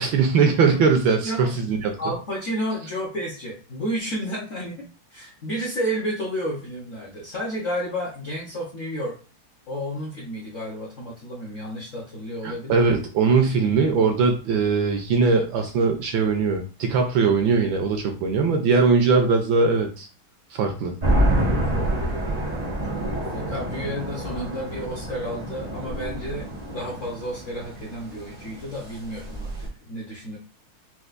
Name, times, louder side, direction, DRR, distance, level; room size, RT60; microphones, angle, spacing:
voice 1, 0.0-2.0 12.4-20.1 20.5-20.9, right 4 dB, 75° right, 4 dB, 1.2 m, -20 dB
voice 2, 1.2-1.6 2.0-4.8 5.1-9.2 9.7-12.9 23.2-30.4, equal, 55° left, -4 dB, 0.8 m, -31 dB
sound 1, 21.0-29.7, right 1 dB, 45° right, 0.5 m, -27 dB
4.4 x 2.3 x 2.4 m, 0.35 s
omnidirectional pair, 2.4 m